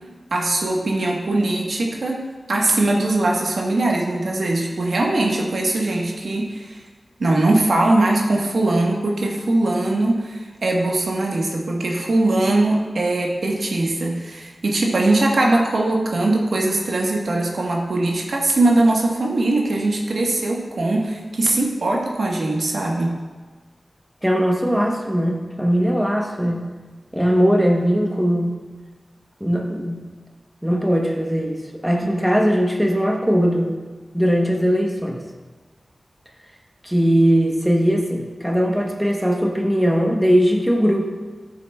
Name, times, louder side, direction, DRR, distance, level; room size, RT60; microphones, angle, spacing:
voice 1, 0.3-6.8 7.2-23.1 32.0-32.1, right 2 dB, 75° right, -1 dB, 1.3 m, -21 dB
voice 2, 24.2-26.7 27.1-28.6 29.4-30.1 30.6-33.7 34.1-35.2 36.8-41.1, equal, 5° right, 0 dB, 0.9 m, -19 dB
13.0 x 6.9 x 2.3 m, 1.4 s
wide cardioid pair, 105°, 0 cm